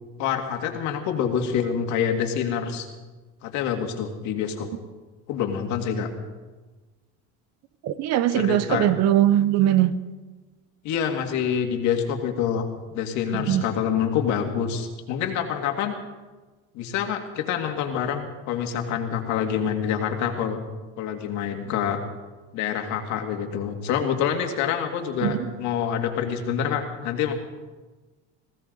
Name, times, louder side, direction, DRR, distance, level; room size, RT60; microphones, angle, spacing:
voice 1, 0.2-2.9 3.4-4.7 5.3-6.1 8.3-8.9 10.8-12.7 12.9-15.9 16.7-20.6 21.0-22.0 22.5-27.3, left 8 dB, 65° left, 4 dB, 2.2 m, -26 dB
voice 2, 7.8-9.9 13.5-13.6 25.2-25.4, right 12 dB, 55° right, 14 dB, 0.9 m, -20 dB
20.0 x 15.5 x 4.0 m, 1.3 s
cardioid pair, 125°, 31 cm